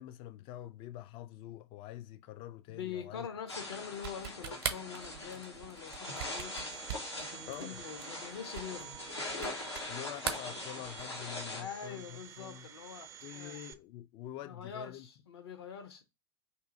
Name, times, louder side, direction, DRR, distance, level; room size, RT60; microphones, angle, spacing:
voice 1, 0.0-3.3 7.5-7.8 9.9-12.7 13.2-15.1, left 13 dB, 40° left, 0.4 m, -46 dB
voice 2, 2.7-6.7 7.2-9.0 11.5-13.6 14.4-16.0, left 8 dB, 70° left, 0.8 m, -44 dB
sound 1, 3.5-11.6, left 2 dB, 90° left, 1.0 m, -42 dB
sound 2, 3.9-9.9 10.2-11.2, right 9 dB, 60° right, 0.7 m, -41 dB
Domestic sounds home sounds, 6.0-13.7, right 10 dB, 25° right, 0.4 m, -50 dB
2.8 x 2.7 x 3.7 m
figure-of-eight pair, 85°, 14 cm